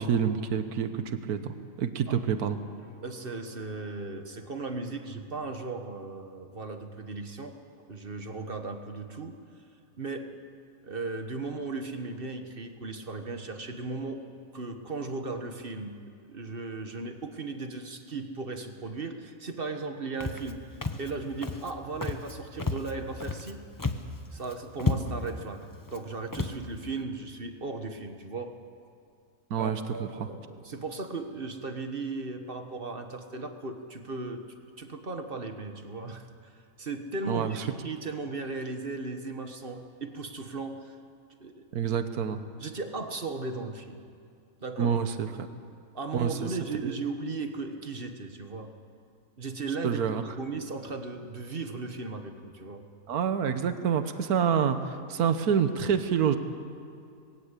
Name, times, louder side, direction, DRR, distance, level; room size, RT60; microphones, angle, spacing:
voice 1, 0.0-2.6 29.5-30.1 37.3-37.6 41.7-42.4 44.8-45.3 46.1-46.3 46.8-46.9 49.8-50.2 53.1-56.4, right 7 dB, 80° right, 9 dB, 1.5 m, -27 dB
voice 2, 2.8-9.4 10.0-10.3 10.8-14.2 14.5-15.9 16.3-20.6 21.0-23.7 24.3-28.5 29.6-36.5 36.8-41.0 41.4-41.6 42.6-44.0 44.6-45.0 45.9-48.7 49.4-50.1 50.4-52.8, right 3 dB, 40° right, 6 dB, 1.4 m, -36 dB
Walk footsteps, 20.2-20.5 20.8-21.1 21.4-21.7 22.0-22.3 22.6-23.5 23.8-24.1 24.4-24.5 24.8-25.3 25.9-26.0 26.3-26.6, left 3 dB, 20° left, 0.7 m, -31 dB
20.5 x 17.5 x 8.3 m, 2.4 s
omnidirectional pair, 1.6 m